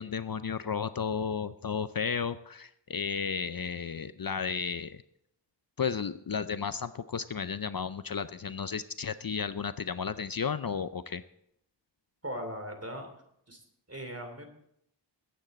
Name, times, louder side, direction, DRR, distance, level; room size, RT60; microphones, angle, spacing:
voice 1, 0.0-5.0 5.8-11.2, left 6 dB, 50° left, 13 dB, 0.5 m, -33 dB
voice 2, 12.2-13.1 13.5-13.6 13.9-14.5, equal, 35° right, 5 dB, 2.9 m, -39 dB
21.0 x 9.1 x 4.2 m, 0.75 s
wide cardioid pair, 55°, 44 cm